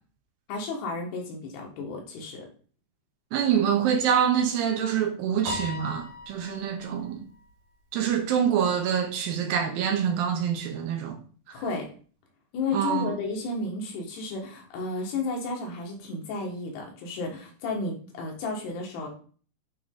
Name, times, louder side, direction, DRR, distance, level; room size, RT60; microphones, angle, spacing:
voice 1, 0.5-2.5 11.5-11.9 12.5-19.1, left 3 dB, 85° left, 3.5 m, -32 dB
voice 2, 3.3-7.2 7.9-11.2 12.7-13.1, right 8 dB, 75° right, 2.3 m, -25 dB
Piano, 5.4-7.0, left 2 dB, 60° right, 1.0 m, -37 dB
8.6 x 3.1 x 3.7 m
omnidirectional pair, 4.5 m